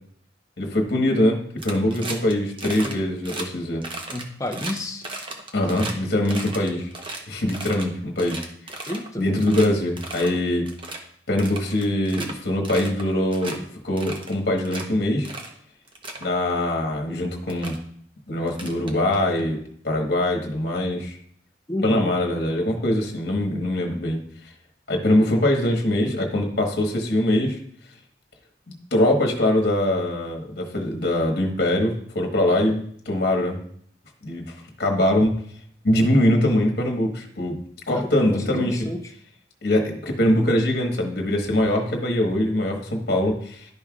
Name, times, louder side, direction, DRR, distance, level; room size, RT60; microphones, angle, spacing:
voice 1, 0.6-1.4 1.6-3.8 5.5-6.9 7.3-8.8 9.2-10.7 11.3-15.3 16.2-17.7 18.3-19.6 19.8-21.2 21.8-24.2 24.9-27.6 28.9-33.6 34.2-35.3 35.8-37.6 37.9-38.9 39.6-43.7, left 1 dB, 60° left, 1 dB, 1.3 m, -22 dB
sound 1, 1.6-2.3 2.6-2.9 3.2-3.4 3.8-5.9 6.2-7.8 8.2-9.1 9.4-9.7 10.0-10.3 10.6-11.0 11.4-12.3 12.6-13.0 13.3-13.6 14.0-14.8 15.2-15.5 15.9-16.2 17.1-17.2 17.5-17.8 18.5-19.4, right 2 dB, 30° right, 0.9 m, -35 dB
voice 2, 4.1-5.0 8.9-9.3 21.7-22.1 37.9-39.0, left 1 dB, 20° left, 4 dB, 0.7 m, -31 dB
11.5 x 5.5 x 2.4 m, 0.63 s
head